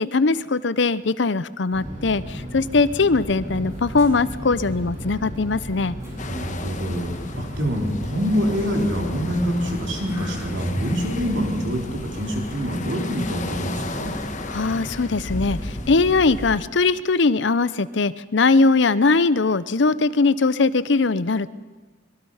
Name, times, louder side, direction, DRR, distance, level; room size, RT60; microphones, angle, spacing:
voice 1, 0.0-6.0 14.5-21.5, left 3 dB, 65° left, 17 dB, 0.7 m, -20 dB
sound 1, 1.7-16.5, equal, 40° right, 7.4 m, -35 dB
sound 2, 3.3-11.8, equal, 15° right, 7.8 m, -39 dB
sound 3, 6.2-16.6, left 2 dB, 40° left, 1.4 m, -36 dB
voice 2, 6.3-14.1, equal, 65° right, 1 dB, 4.0 m, -25 dB
25.0 x 22.5 x 5.7 m, 1.3 s
head